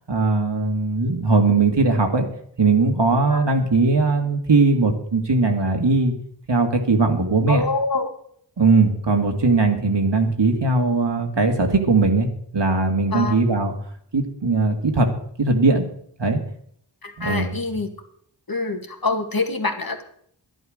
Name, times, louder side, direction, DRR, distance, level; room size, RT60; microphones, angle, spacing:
voice 1, 0.1-2.3 2.6-6.1 6.5-7.7 8.6-12.3 12.5-13.7 14.1-15.1 15.4-15.9 16.2-16.4 17.2-17.5, right 3 dB, 70° right, 4 dB, 2.2 m, -19 dB
voice 2, 7.5-8.1 13.1-13.4 17.0-17.9 18.5-20.0, left 3 dB, 50° left, 5 dB, 2.1 m, -25 dB
12.0 x 11.0 x 6.5 m, 0.64 s
wide cardioid pair, 50°, 44 cm